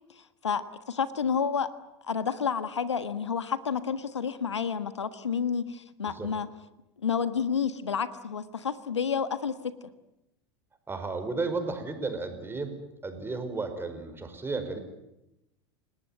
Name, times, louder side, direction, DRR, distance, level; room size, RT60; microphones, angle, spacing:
voice 1, 0.1-1.7 2.0-6.5 7.0-9.9, left 6 dB, 90° left, 12 dB, 1.5 m, -30 dB
voice 2, 10.9-14.8, right 3 dB, 15° right, 7 dB, 5.4 m, -33 dB
29.0 x 18.5 x 9.4 m, 0.90 s
hypercardioid pair, 85°, 14 cm